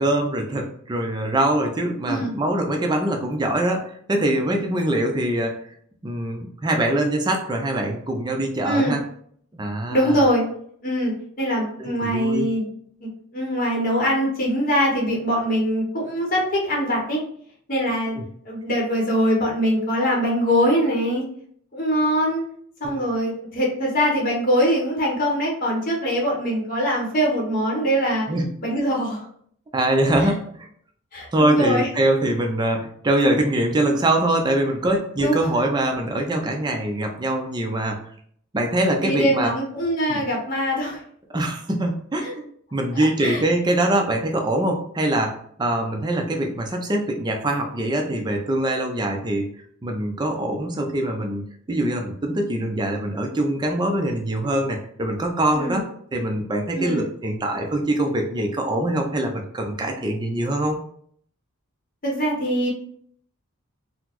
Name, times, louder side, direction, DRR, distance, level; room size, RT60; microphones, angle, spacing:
voice 1, 0.0-5.6 6.0-9.0 9.5-10.2 11.8-12.5 18.2-18.3 22.9-23.1 28.3-28.5 29.7-30.7 31.3-38.0 38.5-39.5 40.1-40.2 41.3-42.4 42.7-49.5 49.8-60.8, right 1 dB, 20° right, 3 dB, 0.4 m, -23 dB
voice 2, 2.1-2.4 8.6-8.9 9.9-10.4 10.8-12.6 13.0-17.2 17.7-18.2 18.4-21.2 21.7-22.4 22.8-28.3 28.6-29.2 30.2-30.3 31.1-31.9 35.2-35.5 39.0-41.0 42.2-42.3 42.9-43.4 55.5-55.8 56.7-57.0 62.0-62.7, equal, 40° left, -3 dB, 0.8 m, -23 dB
3.9 x 2.0 x 2.9 m, 0.63 s
head